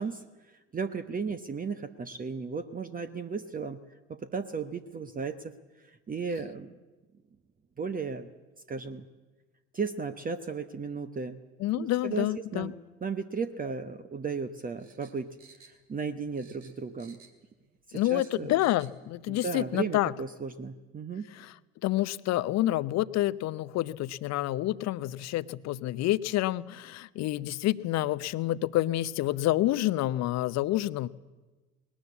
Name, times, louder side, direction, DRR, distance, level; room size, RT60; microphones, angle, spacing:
voice 1, 0.0-3.8 4.1-5.5 5.8-6.7 7.8-8.3 8.7-9.0 9.7-11.4 11.7-12.7 13.0-15.4 15.6-17.2 17.9-18.5 19.3-21.3, right 5 dB, 25° right, 9 dB, 1.0 m, -35 dB
voice 2, 11.6-12.7 17.9-20.1 21.8-31.1, left 15 dB, 45° left, 17 dB, 0.8 m, -28 dB
sound 1, 14.8-16.1 16.4-17.5 17.8-19.0 19.3-19.4, right 5 dB, 75° right, 2.5 m, -56 dB
20.0 x 19.5 x 8.5 m, 1.2 s
figure-of-eight pair, 60°, 37 cm